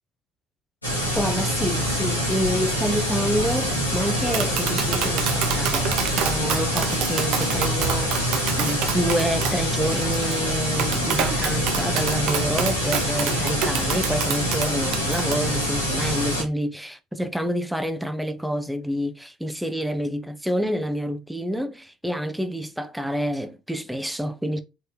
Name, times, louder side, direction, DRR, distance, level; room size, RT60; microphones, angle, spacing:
sound 1, 0.8-16.4, equal, 85° left, 1.3 m, -25 dB
voice 1, 1.2-5.9 6.2-24.6, equal, 5° right, 0.8 m, -28 dB
Tap, 4.1-15.3, right 8 dB, 55° right, 0.6 m, -29 dB
4.3 x 3.9 x 2.8 m
figure-of-eight pair, 55°, 0 cm